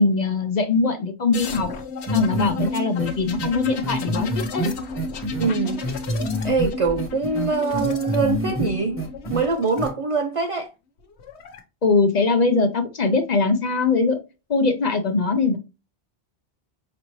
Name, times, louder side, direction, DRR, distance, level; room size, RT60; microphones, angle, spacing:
voice 1, 0.0-1.7 2.1-4.7 11.8-14.2 14.5-15.6, left 3 dB, 45° left, 0.7 m, -21 dB
sound 1, 1.3-9.9 11.0-11.6, left 3 dB, 85° left, 1.1 m, -32 dB
sound 2, 2.1-2.7 3.0-3.1 3.4-3.5 3.8-5.5 5.8-6.7 7.0-8.7 9.0-9.4 9.8-9.9, equal, 10° left, 1.1 m, -26 dB
voice 2, 5.4-5.8 6.4-9.0 9.3-10.7, right 4 dB, 60° right, 0.3 m, -23 dB
5.3 x 2.7 x 3.0 m
omnidirectional pair, 1.1 m